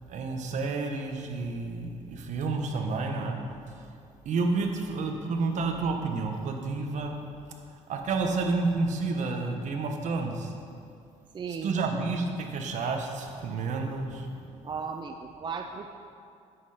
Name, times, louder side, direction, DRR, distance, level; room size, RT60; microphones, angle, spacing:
voice 1, 0.1-3.4 4.2-7.2 7.9-10.5 11.6-14.5, right 3 dB, 65° right, 3 dB, 1.3 m, -30 dB
voice 2, 11.3-12.0 14.6-15.9, right 5 dB, 35° right, 5 dB, 0.5 m, -36 dB
10.5 x 7.9 x 5.0 m, 2.4 s
cardioid pair, 95°, 13 cm